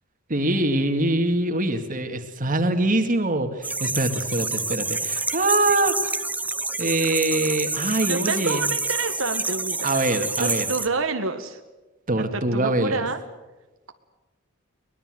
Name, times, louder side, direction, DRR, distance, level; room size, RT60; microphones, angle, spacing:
voice 1, 0.3-6.1 6.8-8.6 9.8-10.7 12.1-13.0, right 2 dB, 40° right, 6 dB, 2.2 m, -24 dB
sound 1, 3.6-10.9, right 3 dB, 10° right, 0.8 m, -28 dB
voice 2, 8.0-10.1 10.4-11.6 12.3-13.2, right 4 dB, 90° right, 7 dB, 1.6 m, -28 dB
23.5 x 20.5 x 7.8 m, 1.1 s
head